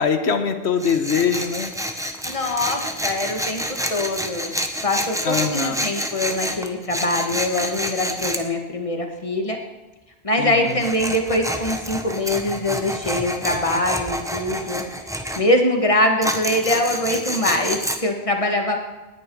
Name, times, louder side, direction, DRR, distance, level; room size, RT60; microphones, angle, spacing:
voice 1, 0.0-1.7 5.2-5.9 10.4-10.8, left 6 dB, 85° left, 7 dB, 1.5 m, -23 dB
Tools, 0.8-8.4 10.7-15.4 16.2-18.0, equal, 5° right, 1.0 m, -28 dB
voice 2, 2.2-4.5 4.8-9.6 10.2-14.8 15.4-18.8, left 1 dB, 30° left, 3 dB, 1.8 m, -23 dB
18.5 x 10.0 x 4.8 m, 1.2 s
omnidirectional pair, 1.1 m